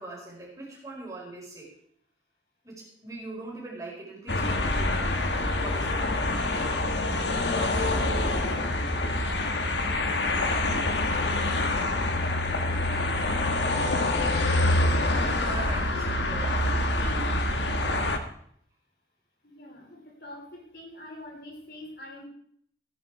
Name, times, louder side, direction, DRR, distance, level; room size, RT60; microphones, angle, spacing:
voice 1, 0.0-1.7 2.6-6.2 7.4-8.2 10.7-10.9 15.4-16.8, right 2 dB, 20° right, -4 dB, 4.9 m, -42 dB
sound 1, 4.3-18.2, left 2 dB, 80° left, 1.6 m, -26 dB
voice 2, 15.4-17.3 19.4-22.3, left 1 dB, 60° left, 0 dB, 4.2 m, -45 dB
16.5 x 10.5 x 4.8 m, 0.65 s
head